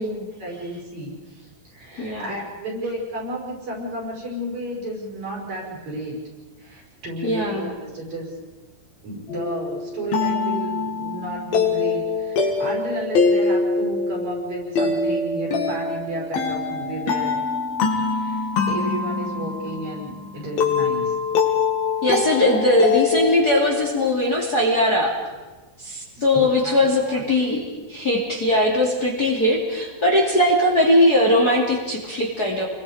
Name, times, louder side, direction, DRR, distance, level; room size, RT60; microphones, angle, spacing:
voice 1, 0.4-6.2 6.6-8.4 9.0-17.4 17.9-21.2 22.5-22.7 26.1-26.8 27.1-27.4, right 1 dB, 50° right, -1 dB, 6.7 m, -32 dB
voice 2, 2.0-2.3 7.2-7.7 22.0-25.1 25.8-32.7, left 1 dB, 25° left, -1 dB, 3.0 m, -20 dB
sound 1, 9.3-24.1, left 4 dB, 75° left, 4.2 m, -24 dB
30.0 x 22.5 x 5.1 m, 1.3 s
omnidirectional pair, 4.3 m